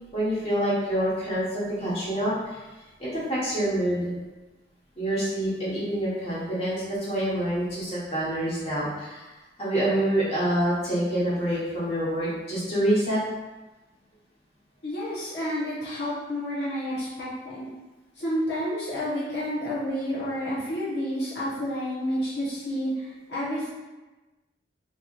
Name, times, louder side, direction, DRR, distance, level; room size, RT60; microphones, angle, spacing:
voice 1, 0.1-2.6 3.0-4.1 4.9-9.3 9.6-13.2, right 1 dB, 35° left, -9 dB, 1.4 m, -26 dB
voice 2, 14.8-17.7 18.2-23.7, equal, 70° left, -9 dB, 1.1 m, -30 dB
4.6 x 3.0 x 2.6 m, 1.1 s
head